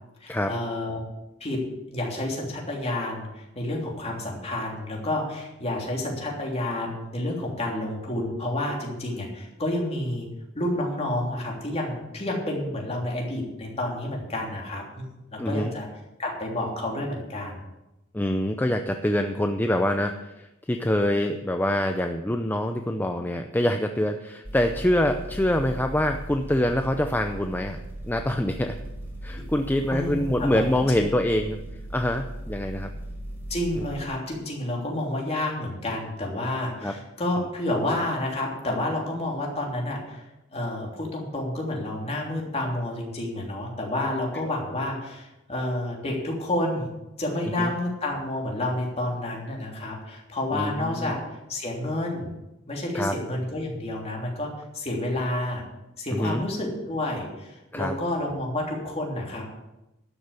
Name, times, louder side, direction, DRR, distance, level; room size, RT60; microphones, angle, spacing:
voice 1, 0.2-1.0 1.4-1.6 1.9-10.3 10.5-15.9 16.2-17.6 29.3-29.4 29.9-30.6 31.0-31.1 33.5-40.2 40.5-46.9 47.2-51.2 51.5-52.3 52.7-55.6 56.0-59.5, left 1 dB, 30° left, -1 dB, 3.2 m, -30 dB
voice 2, 15.4-15.7 18.1-28.8 29.2-31.6 31.9-32.9 33.8-33.9 36.8-36.9 47.6-47.7 50.5-51.1 52.9-53.2 56.1-56.4 57.7-57.9, left 1 dB, 10° left, 6 dB, 0.5 m, -25 dB
sound 1, 24.4-34.1, right 1 dB, 10° right, 3.6 m, -38 dB
12.5 x 6.6 x 8.3 m, 0.96 s
head